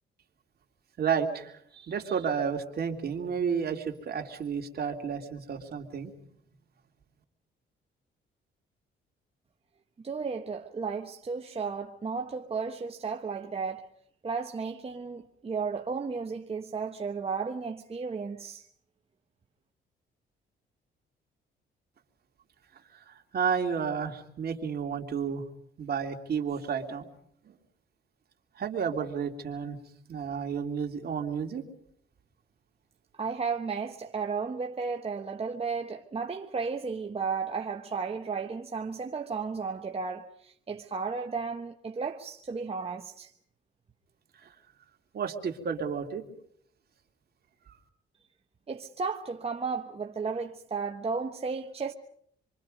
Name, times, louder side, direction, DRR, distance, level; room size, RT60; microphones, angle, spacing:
voice 1, 1.0-6.1 22.9-25.4 25.8-27.1 27.5-27.6 28.6-29.8 30.1-31.6 44.4-44.5 45.1-46.2 47.7-47.8, right 6 dB, 50° right, 3.0 m, -31 dB
voice 2, 10.0-13.9 14.2-18.7 33.2-43.3 48.7-51.9, right 5 dB, 30° right, 1.2 m, -34 dB
27.5 x 24.0 x 5.3 m
cardioid pair, 90°, 20 cm